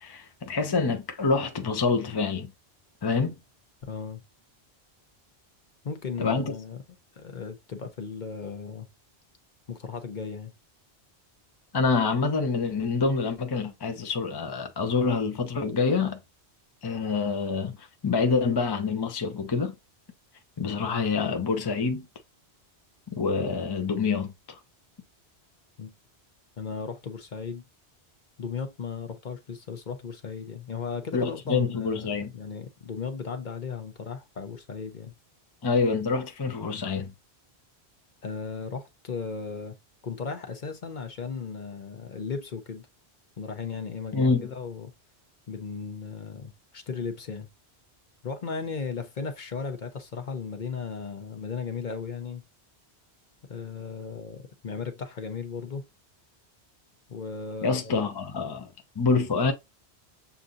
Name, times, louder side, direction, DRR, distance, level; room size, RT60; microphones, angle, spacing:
voice 1, 0.0-2.5 3.0-3.4 6.2-6.5 11.7-16.2 16.8-19.7 20.6-22.1 23.2-24.6 31.1-32.3 35.6-37.1 44.1-44.5 57.6-59.5, left 4 dB, 25° left, 0.6 m, -26 dB
voice 2, 3.8-4.2 5.8-6.8 7.2-8.9 9.7-10.5 25.8-25.9 26.6-27.6 28.4-35.1 38.2-39.7 40.0-42.9 43.4-44.9 45.5-47.5 48.2-52.4 53.5-55.9 57.1-58.1, left 5 dB, 50° left, 0.9 m, -36 dB
6.9 x 2.6 x 2.5 m
omnidirectional pair, 1.1 m